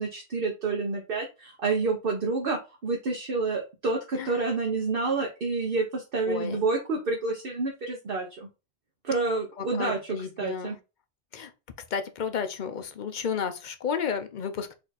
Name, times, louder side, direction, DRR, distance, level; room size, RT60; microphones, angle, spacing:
voice 1, 0.0-8.5 9.0-10.8, right 3 dB, 55° right, 1.1 m, -29 dB
voice 2, 6.3-6.7 9.6-10.8 11.3-11.5 11.9-14.7, left 6 dB, 50° left, 0.7 m, -32 dB
4.5 x 2.8 x 4.1 m
omnidirectional pair, 1.1 m